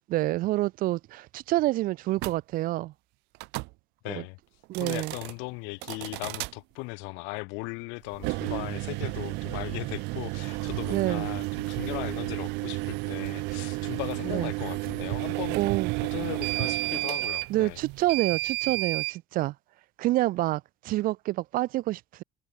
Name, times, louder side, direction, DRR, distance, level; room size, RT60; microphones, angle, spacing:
voice 1, 0.1-2.9 4.1-4.2 4.7-5.1 10.9-11.3 14.3-14.5 15.6-15.9 17.5-19.5 20.0-22.2, right 17 dB, 50° right, 1.9 m, -27 dB
sound 1, 2.2-2.4 3.3-3.7 4.6-5.3 5.8-6.5 8.1-19.2, right 26 dB, 70° right, 0.7 m, -32 dB
voice 2, 4.0-4.4 4.8-15.6 16.0-17.8, left 32 dB, 90° left, 4.6 m, -38 dB
cardioid pair, 175°, 18 cm